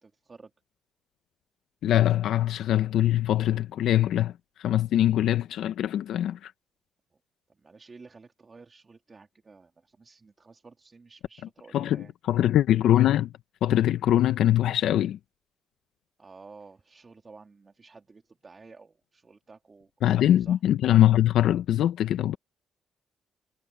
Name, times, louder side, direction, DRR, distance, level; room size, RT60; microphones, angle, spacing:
voice 1, 0.0-0.5 7.5-12.1 16.2-20.6, right 4 dB, 30° right, 2.7 m, -52 dB
voice 2, 1.8-6.5 11.7-13.3 13.6-15.2 20.0-22.4, left 12 dB, 75° left, 0.7 m, -23 dB
cardioid pair, 90°, 0 cm